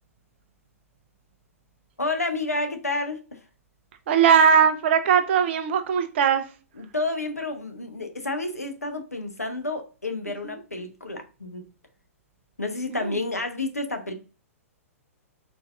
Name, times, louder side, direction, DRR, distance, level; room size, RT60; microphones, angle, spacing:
voice 1, 2.0-3.4 6.8-11.6 12.6-14.1, left 2 dB, 85° left, 0.9 m, -30 dB
voice 2, 4.1-6.4 10.4-10.6 12.9-13.2, right 7 dB, 50° right, 0.8 m, -20 dB
4.5 x 4.2 x 2.4 m
figure-of-eight pair, 110°, 8 cm